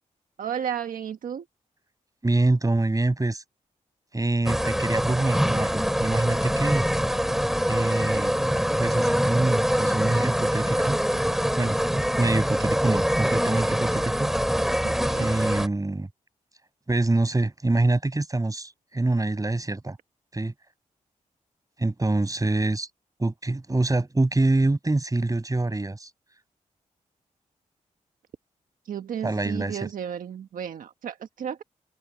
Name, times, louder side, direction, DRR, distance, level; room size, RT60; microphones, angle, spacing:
voice 1, 0.4-1.5 14.8-15.3 28.8-31.6, right 8 dB, 80° right, 1.5 m, -33 dB
voice 2, 2.2-3.4 4.1-6.8 7.7-8.4 8.7-11.0 11.6-14.3 15.2-16.1 16.9-20.0 20.3-20.5 21.8-22.9 23.2-26.1 29.2-29.8, right 2 dB, 25° right, 6.2 m, -25 dB
sound 1, 4.5-15.7, equal, ahead, 2.3 m, -24 dB
cardioid pair, 55°, 14 cm